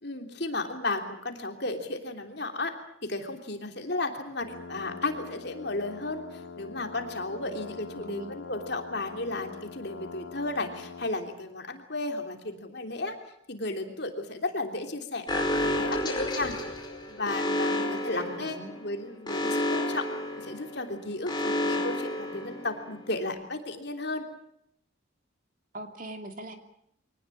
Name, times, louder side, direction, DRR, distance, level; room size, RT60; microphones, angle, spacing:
voice 1, 0.0-2.7 3.0-13.2 13.5-16.6 17.1-20.1 20.4-24.2, left 2 dB, 55° left, 5 dB, 3.2 m, -34 dB
sound 1, 4.4-11.2, left 5 dB, 70° left, 2.2 m, -44 dB
Alarm, 15.3-23.0, left 1 dB, 20° left, 4.9 m, -30 dB
voice 2, 17.7-18.7 25.7-26.6, right 1 dB, 40° right, 6 dB, 2.6 m, -42 dB
24.0 x 19.0 x 8.6 m, 0.72 s
head